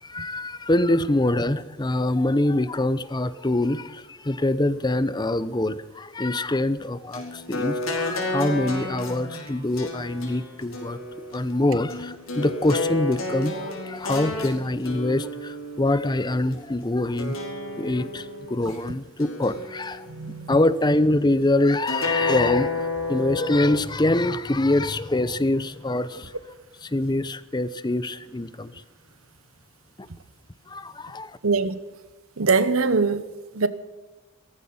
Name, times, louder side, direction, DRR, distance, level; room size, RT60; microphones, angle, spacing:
voice 1, 0.0-11.0 11.3-17.4 17.8-20.1 20.5-26.3 26.8-28.7 30.7-31.3, left 1 dB, 20° left, 0.7 m, -24 dB
sound 1, 7.1-16.6 17.2-18.8 19.2-20.3 21.9-23.8, left 2 dB, 80° left, 4.3 m, -31 dB
voice 2, 20.1-20.6 31.4-31.8 32.4-33.7, right 4 dB, 85° right, 1.1 m, -23 dB
16.5 x 14.5 x 5.5 m
head